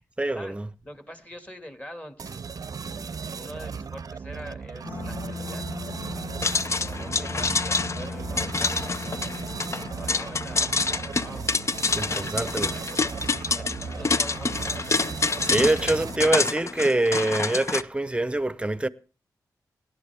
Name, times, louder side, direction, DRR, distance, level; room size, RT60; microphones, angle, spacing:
voice 1, 0.2-0.7 11.9-12.8 15.4-18.9, right 2 dB, 15° right, 0.8 m, -25 dB
voice 2, 0.8-2.4 2.8-6.4 6.7-11.5 13.2-14.7, equal, 20° left, 2.2 m, -44 dB
sound 1, 2.2-16.4, right 6 dB, 55° right, 0.6 m, -37 dB
sound 2, 4.8-16.3, left 2 dB, 75° left, 3.3 m, -39 dB
sound 3, 6.4-17.8, left 4 dB, 40° left, 0.6 m, -27 dB
18.0 x 11.0 x 3.5 m
cardioid pair, 55°, 7 cm